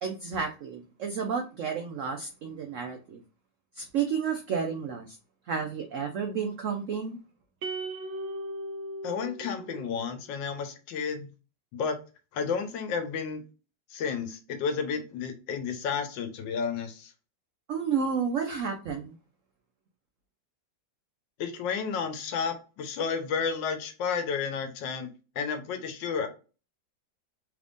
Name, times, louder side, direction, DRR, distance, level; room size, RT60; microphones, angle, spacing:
voice 1, 0.0-3.2 3.7-5.2 5.5-7.2 17.7-19.1, right 6 dB, 85° right, 4 dB, 0.6 m, -31 dB
sound 1, 7.6-10.1, right 1 dB, 65° right, 1.0 m, -37 dB
voice 2, 9.0-11.3 11.7-12.0 12.3-13.4 13.9-17.1 21.4-25.1 25.3-26.3, left 6 dB, 85° left, 7 dB, 1.4 m, -31 dB
3.5 x 3.4 x 2.5 m, 0.33 s
omnidirectional pair, 2.0 m